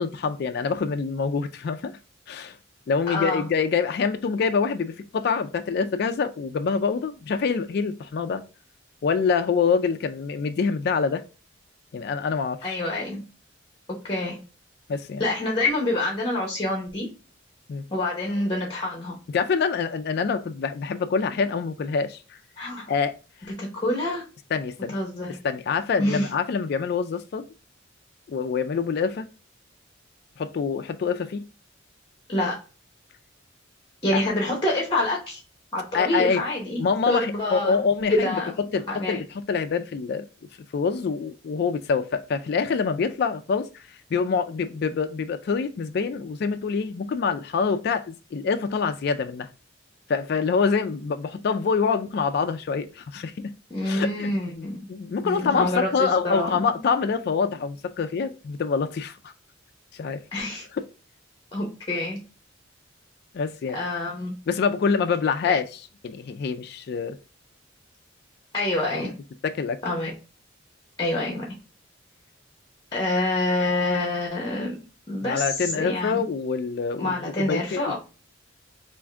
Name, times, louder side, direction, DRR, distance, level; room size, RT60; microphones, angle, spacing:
voice 1, 0.0-2.0 2.3-2.6 2.9-8.4 9.0-11.2 11.9-12.6 14.9-15.2 17.7-17.8 19.3-22.2 22.9-23.2 24.5-25.0 25.3-27.5 28.3-29.3 30.4-31.4 34.1-34.2 35.9-36.4 36.8-38.4 38.7-40.2 40.7-43.8 44.1-49.5 50.1-53.5 53.8-54.3 54.5-59.3 59.9-60.2 63.3-63.8 64.5-65.6 66.0-67.2 69.4-69.8 75.2-78.0, left 5 dB, 55° left, 0.3 m, -25 dB
voice 2, 3.1-3.4 12.6-13.2 13.9-14.4 15.2-17.1 17.9-19.2 22.6-22.9 23.6-24.3 24.9-25.4 26.0-26.3 32.3-32.6 34.0-35.4 35.7-37.8 38.1-38.5 38.9-39.2 53.7-54.9 55.2-56.8 60.3-60.6 61.5-62.2 63.7-64.3 65.4-65.6 68.5-69.1 69.8-70.1 71.0-71.5 72.9-74.8 75.1-76.3 77.0-78.0, left 1 dB, 25° left, 0.8 m, -26 dB
3.5 x 2.5 x 3.3 m
head